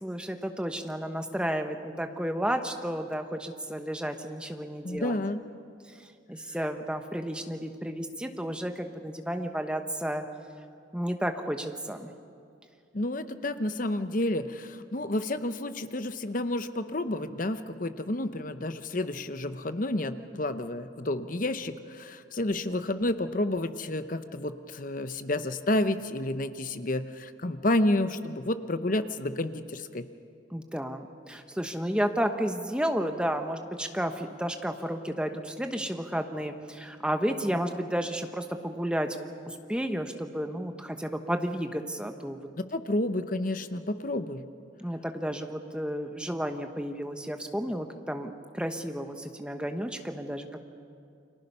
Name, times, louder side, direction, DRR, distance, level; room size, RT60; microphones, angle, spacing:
voice 1, 0.0-5.2 6.0-10.3 10.9-12.1 30.5-39.2 39.4-42.4 44.8-50.6, equal, 5° right, 5 dB, 1.1 m, -32 dB
voice 2, 4.8-5.4 12.9-30.1 42.6-44.4, left 1 dB, 40° left, 10 dB, 0.8 m, -30 dB
30.0 x 23.0 x 5.5 m, 2.4 s
head